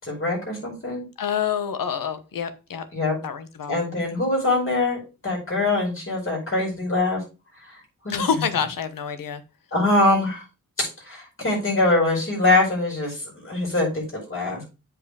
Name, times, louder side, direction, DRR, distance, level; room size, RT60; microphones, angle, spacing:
voice 1, 0.0-1.0 2.9-3.2 3.7-7.2 8.0-8.2 9.7-10.4 10.8-14.0 14.3-14.6, left 2 dB, 40° left, -2 dB, 5.1 m, -23 dB
voice 2, 1.2-2.9 3.2-3.7 8.1-9.4, left 7 dB, 80° left, 10 dB, 1.1 m, -27 dB
7.7 x 4.9 x 4.8 m, 0.30 s
wide cardioid pair, 155°, 33 cm